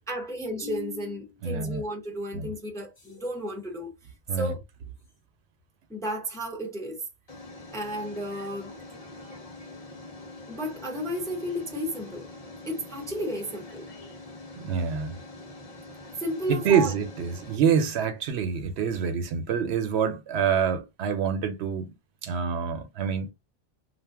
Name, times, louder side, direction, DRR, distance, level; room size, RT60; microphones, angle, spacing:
voice 1, 0.1-3.9 4.3-4.6 5.9-7.0 7.7-8.8 10.5-12.3 12.7-13.9 16.2-16.9, equal, 5° left, 0.5 m, -33 dB
voice 2, 1.4-1.8 2.3-2.5 4.3-4.5 14.6-15.2 16.5-21.9 22.2-23.3, right 7 dB, 85° right, 0.9 m, -26 dB
sound 1, 3.0-3.4 5.1-5.2 7.3-17.6, left 2 dB, 35° left, 0.9 m, -45 dB
2.6 x 2.1 x 3.3 m
omnidirectional pair, 1.1 m